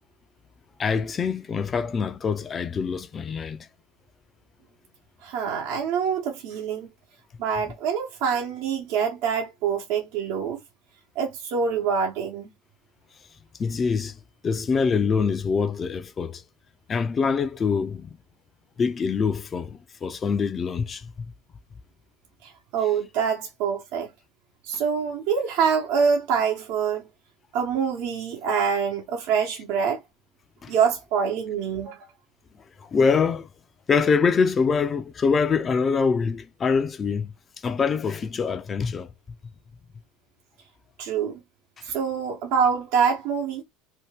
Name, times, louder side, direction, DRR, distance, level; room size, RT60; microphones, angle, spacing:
voice 1, 0.8-3.7 13.6-16.4 16.9-18.2 18.8-21.1 30.6-30.7 32.8-33.5 33.9-37.3 37.6-39.1 41.8-41.9, left 5 dB, 30° left, 0.5 m, -24 dB
voice 2, 5.2-6.9 7.4-10.6 11.1-12.5 22.4-24.1 24.6-27.1 27.5-30.0 30.7-32.1 41.0-41.4 41.8-43.6, right 6 dB, 65° right, 1.0 m, -25 dB
2.9 x 2.2 x 3.4 m
hypercardioid pair, 95°, 0 cm